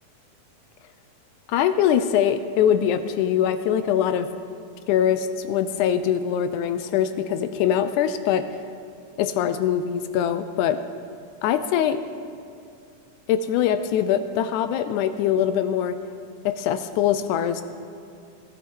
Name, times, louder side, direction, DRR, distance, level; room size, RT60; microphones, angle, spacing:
voice 1, 1.5-4.3 4.9-8.4 9.2-10.8 11.4-12.0 13.3-16.0 16.5-17.6, left 9 dB, 80° left, 11 dB, 1.9 m, -22 dB
16.5 x 10.5 x 4.6 m, 2.3 s
omnidirectional pair, 3.7 m